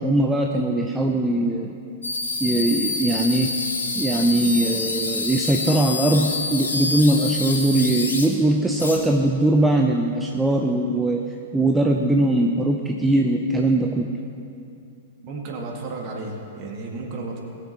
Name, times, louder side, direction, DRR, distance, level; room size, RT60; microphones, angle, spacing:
voice 1, 0.0-1.8 2.4-3.6 4.0-11.2 11.5-14.2, right 1 dB, 5° right, 2 dB, 0.6 m, -21 dB
sound 1, 2.0-8.3 8.8-9.0, left 3 dB, 75° left, 1.8 m, -27 dB
voice 2, 15.2-17.4, right 3 dB, 35° right, 1 dB, 1.9 m, -33 dB
20.0 x 7.3 x 4.2 m, 2.5 s
figure-of-eight pair, 100°, 0 cm